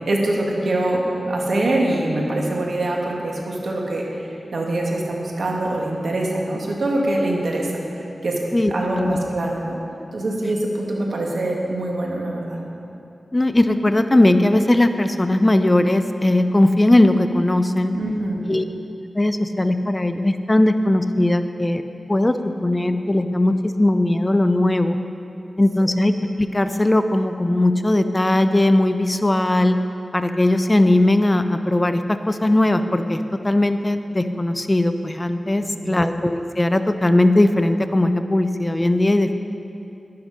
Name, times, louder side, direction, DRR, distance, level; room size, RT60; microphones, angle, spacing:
voice 1, 0.1-8.4 8.7-9.8 10.1-12.6 17.9-18.5 25.8-25.9 35.5-36.0, right 1 dB, 70° right, -1 dB, 2.1 m, -24 dB
voice 2, 8.5-9.2 13.3-17.9 18.5-18.6 19.1-21.8 22.1-25.0 25.6-29.8 30.1-39.3, left 1 dB, 20° left, 9 dB, 0.5 m, -19 dB
11.5 x 11.5 x 5.2 m, 2.7 s
wide cardioid pair, 70°, 0 cm